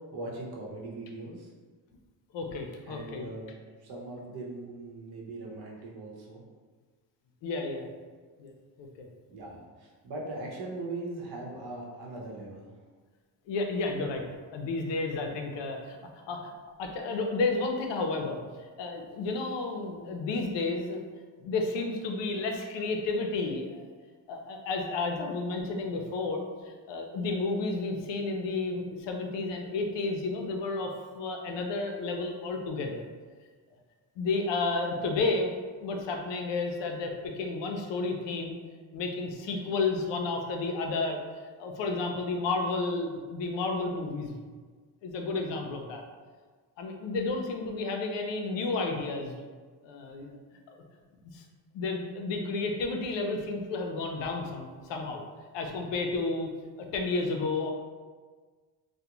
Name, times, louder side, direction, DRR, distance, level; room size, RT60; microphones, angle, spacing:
voice 1, 0.1-1.5 2.8-3.5 3.8-6.4 9.3-12.7, right 2 dB, 60° right, -3 dB, 0.8 m, -40 dB
voice 2, 2.3-3.3 7.4-7.9 8.4-8.5 8.8-9.1 13.5-14.2 14.5-16.0 16.3-16.5 16.8-18.4 18.8-21.0 21.4-23.9 24.3-33.1 34.2-35.5 35.8-38.6 38.9-41.2 41.6-44.4 45.0-46.0 46.8-49.3 49.8-50.4 51.3-51.4 51.7-55.2 55.5-56.5 56.8-57.7, left 3 dB, 75° left, 3 dB, 0.6 m, -31 dB
2.3 x 2.1 x 2.9 m, 1.5 s
cardioid pair, 80°, 44 cm